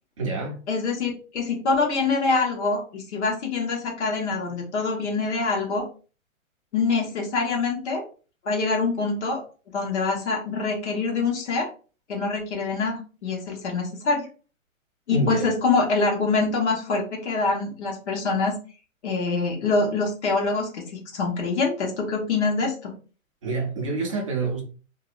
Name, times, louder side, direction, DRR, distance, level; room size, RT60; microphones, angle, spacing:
voice 1, 0.2-0.6 15.1-15.5 23.4-24.6, right 2 dB, 25° right, 0.4 m, -26 dB
voice 2, 0.7-5.8 6.7-8.0 8.4-9.4 9.7-11.7 12.1-14.3 15.1-18.5 19.0-22.9, left 4 dB, 55° left, 1.2 m, -25 dB
2.6 x 2.1 x 2.4 m
hypercardioid pair, 145°, 42 cm